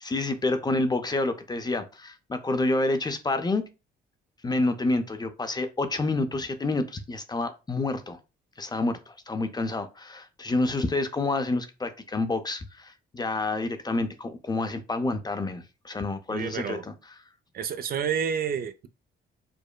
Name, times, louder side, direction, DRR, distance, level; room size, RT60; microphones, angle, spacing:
voice 1, 0.0-3.6 4.4-8.2 8.6-17.1, left 2 dB, 20° left, 0.5 m, -28 dB
voice 2, 16.3-16.8 17.5-18.9, right 7 dB, 50° right, 0.4 m, -29 dB
4.9 x 2.1 x 2.2 m
cardioid pair, 90°, 20 cm